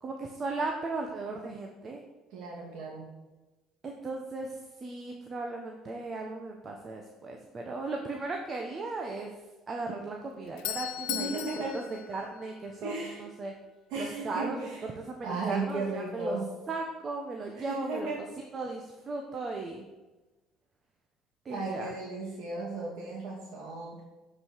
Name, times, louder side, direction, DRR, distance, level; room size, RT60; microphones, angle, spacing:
voice 1, 0.0-2.0 3.8-9.3 9.7-11.4 11.7-11.8 12.1-13.5 14.0-14.7 14.9-16.4 16.7-18.1 18.5-19.9 21.4-21.9, right 3 dB, 35° right, 2 dB, 1.2 m, -36 dB
voice 2, 2.3-3.1 11.1-11.8 12.8-13.2 13.9-14.9 15.2-16.5 17.6-18.2 21.5-24.0, right 3 dB, 70° right, -7 dB, 2.9 m, -35 dB
Doorbell, 10.2-13.1, left 13 dB, 85° left, 0.7 m, -38 dB
11.5 x 5.3 x 6.5 m, 1.2 s
supercardioid pair, 95°, 0 cm